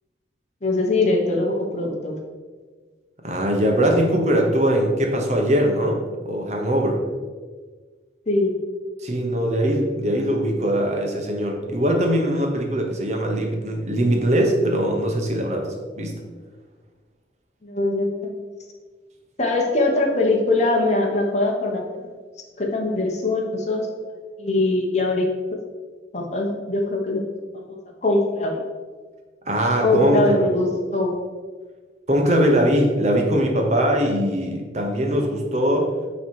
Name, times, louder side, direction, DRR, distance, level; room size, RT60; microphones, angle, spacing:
voice 1, 0.6-2.2 8.3-8.6 17.6-18.5 19.4-22.1 22.6-23.9 24.4-25.3 26.1-27.2 27.5-28.6 29.8-31.1, left 2 dB, 40° left, 0 dB, 1.1 m, -22 dB
voice 2, 3.2-6.0 6.2-7.0 9.0-15.7 16.0-16.1 29.5-30.5 32.1-35.9, equal, 40° right, 2 dB, 1.1 m, -21 dB
8.8 x 3.2 x 4.7 m, 1.4 s
head